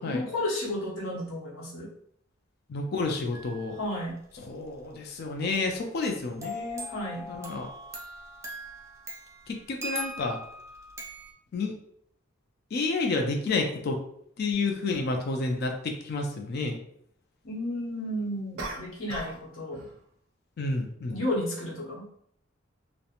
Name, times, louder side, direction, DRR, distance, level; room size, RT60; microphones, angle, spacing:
voice 1, 0.0-1.9 3.8-4.2 6.9-7.3 17.4-19.8 21.1-22.1, left 1 dB, 85° left, -4 dB, 0.9 m, -32 dB
voice 2, 2.7-3.8 4.4-6.9 7.3-7.7 9.5-10.4 11.5-11.8 12.7-14.0 14.4-16.8 20.6-21.2, left 3 dB, 50° left, 3 dB, 0.4 m, -30 dB
sound 1, 3.3-3.8 5.5-11.3, equal, 15° right, 0.4 m, -40 dB
sound 2, 14.5-14.6 18.6-19.5 19.7-20.0, right 2 dB, 75° right, 0.4 m, -38 dB
2.4 x 2.1 x 2.8 m, 0.68 s
head